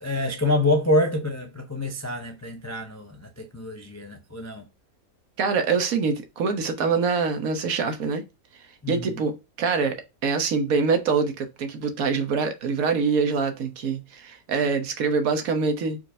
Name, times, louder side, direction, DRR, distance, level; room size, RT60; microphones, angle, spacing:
voice 1, 0.0-4.6 8.8-9.1, left 1 dB, 25° left, 0.3 m, -26 dB
voice 2, 5.4-8.2 8.9-10.0 10.2-16.0, right 5 dB, 70° right, 1.3 m, -24 dB
4.6 x 4.4 x 2.6 m
omnidirectional pair, 1.6 m